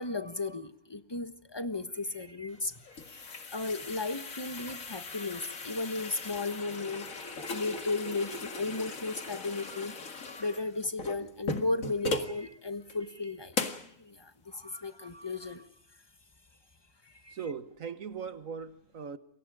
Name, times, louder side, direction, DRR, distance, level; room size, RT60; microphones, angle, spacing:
voice 1, 0.0-13.6 14.0-15.6 17.0-17.4, left 3 dB, 20° left, 1.3 m, -35 dB
sound 1, 2.5-12.4 12.9-13.0 13.5-13.9, left 3 dB, 70° left, 2.3 m, -38 dB
voice 2, 17.3-19.2, right 6 dB, 70° right, 1.7 m, -39 dB
29.0 x 23.0 x 5.0 m
omnidirectional pair, 1.5 m